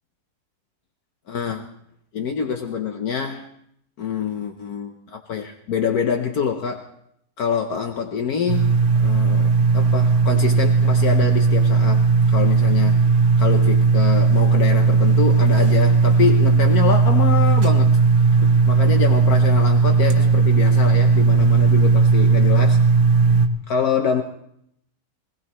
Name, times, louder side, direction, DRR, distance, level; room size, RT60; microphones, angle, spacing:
voice 1, 1.3-1.6 2.1-3.5 4.0-6.9 7.4-13.0 13.4-18.0 18.4-22.8 23.7-24.2, left 7 dB, 65° left, 4 dB, 1.4 m, -25 dB
sound 1, 8.5-23.5, right 4 dB, 50° right, 1.5 m, -16 dB
24.0 x 18.0 x 3.1 m, 0.72 s
omnidirectional pair, 1.7 m